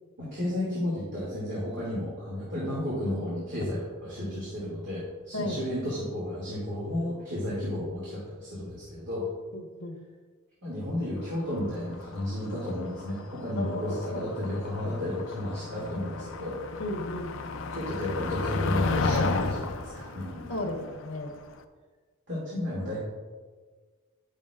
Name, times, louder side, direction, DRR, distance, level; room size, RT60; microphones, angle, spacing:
voice 1, 0.2-9.3 10.6-16.6 17.7-20.9 22.3-23.0, left 1 dB, 55° right, -7 dB, 2.5 m, -32 dB
voice 2, 9.5-10.0 13.6-14.0 16.8-17.4 20.5-21.3, left 1 dB, 75° left, 2 dB, 1.3 m, -34 dB
Motor vehicle (road), 11.2-21.6, left 4 dB, 60° left, 0.5 m, -34 dB
11.0 x 7.3 x 2.5 m, 1.4 s
head